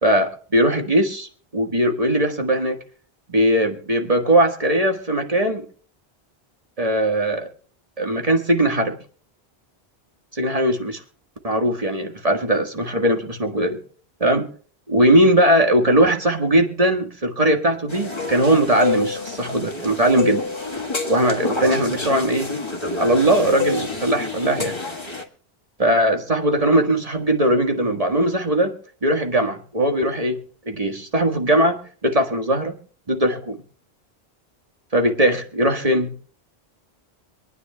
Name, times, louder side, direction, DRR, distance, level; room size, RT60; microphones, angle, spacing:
voice 1, 0.0-2.8 3.3-5.6 6.8-7.5 8.0-9.0 10.3-11.0 11.4-13.8 14.2-14.5 14.9-20.4 21.1-22.5 23.0-24.8 25.8-28.7 29.0-30.4 30.7-32.7 33.1-33.6 34.9-36.1, right 1 dB, 35° right, 4 dB, 1.6 m, -19 dB
sound 1, 17.9-25.2, left 3 dB, 25° left, 1.8 m, -28 dB
26.0 x 9.7 x 2.3 m, 0.43 s
omnidirectional pair, 1.1 m